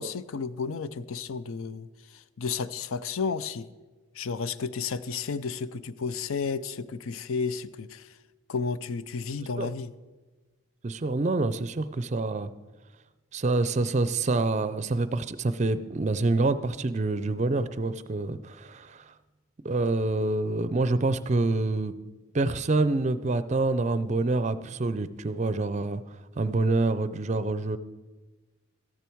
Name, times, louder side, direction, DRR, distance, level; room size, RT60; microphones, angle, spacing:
voice 1, 0.0-1.9 2.1-3.7 4.1-8.1 8.5-9.9, left 5 dB, 75° left, 15 dB, 0.5 m, -32 dB
voice 2, 10.8-12.5 13.3-19.1 19.6-21.9 22.3-26.0 26.4-27.8, right 2 dB, 35° right, 14 dB, 0.4 m, -26 dB
13.5 x 10.5 x 4.6 m, 1.3 s
head